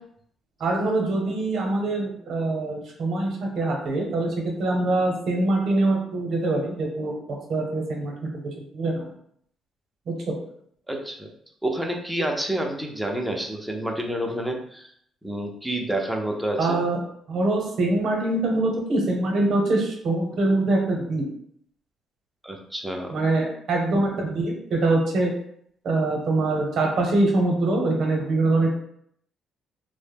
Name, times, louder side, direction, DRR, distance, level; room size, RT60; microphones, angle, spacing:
voice 1, 0.6-8.4 8.7-9.1 10.1-10.3 16.6-17.0 17.3-21.2 23.1-25.3 25.8-28.8, right 2 dB, 65° right, 0 dB, 0.7 m, -24 dB
voice 2, 10.9-11.3 11.6-14.9 15.2-16.8 22.4-23.1, right 1 dB, 5° right, 1 dB, 0.5 m, -29 dB
2.0 x 2.0 x 3.3 m, 0.67 s
cardioid pair, 90°, 0 cm